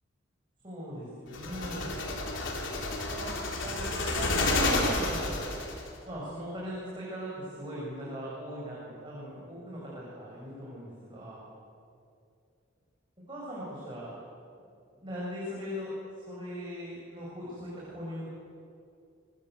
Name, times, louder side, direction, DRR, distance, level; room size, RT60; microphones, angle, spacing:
voice 1, 0.6-2.0 3.1-3.3 3.6-5.7 6.0-11.4 13.3-14.1 14.9-18.3, equal, 25° right, -6 dB, 7.1 m, -40 dB
sound 1, 1.3-5.9, left 2 dB, 70° left, 3.9 m, -30 dB
26.0 x 22.0 x 8.2 m, 2.4 s
head